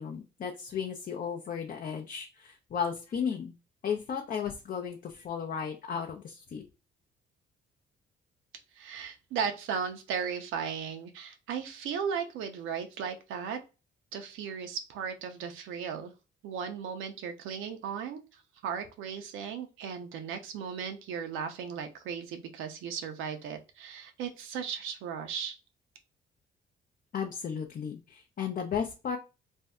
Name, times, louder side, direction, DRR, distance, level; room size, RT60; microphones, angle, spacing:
voice 1, 0.0-3.5 3.8-6.6 27.1-29.2, left 7 dB, 45° left, 2 dB, 0.5 m, -34 dB
voice 2, 8.8-13.6 14.1-16.1 16.4-18.2 18.6-25.6, right 7 dB, 90° right, 6 dB, 0.6 m, -36 dB
2.6 x 2.1 x 3.4 m, 0.29 s
cardioid pair, 90°, 20 cm